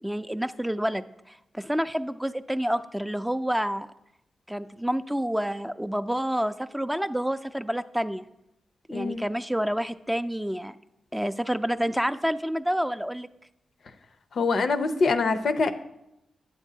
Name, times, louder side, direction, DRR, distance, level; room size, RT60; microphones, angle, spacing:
voice 1, 0.0-3.9 4.5-8.2 8.9-10.8 11.1-13.3, equal, 5° right, 11 dB, 0.3 m, -28 dB
voice 2, 8.9-9.2 14.3-15.7, left 4 dB, 70° left, 8 dB, 0.5 m, -24 dB
8.4 x 7.1 x 2.7 m, 0.85 s
cardioid pair, 50°, 0 cm